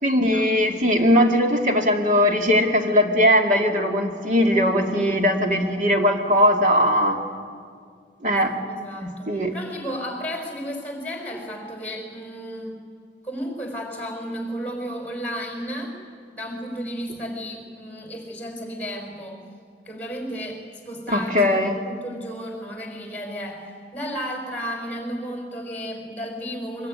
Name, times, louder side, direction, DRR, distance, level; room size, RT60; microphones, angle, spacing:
voice 1, 0.0-7.2 8.2-8.6 9.0-9.5 21.1-21.8, equal, 45° right, 3 dB, 2.3 m, -20 dB
voice 2, 8.6-12.8 13.2-15.9 16.3-19.4 19.8-21.3 21.7-26.9, equal, 10° left, 3 dB, 5.0 m, -33 dB
24.0 x 22.0 x 9.7 m, 2.1 s
head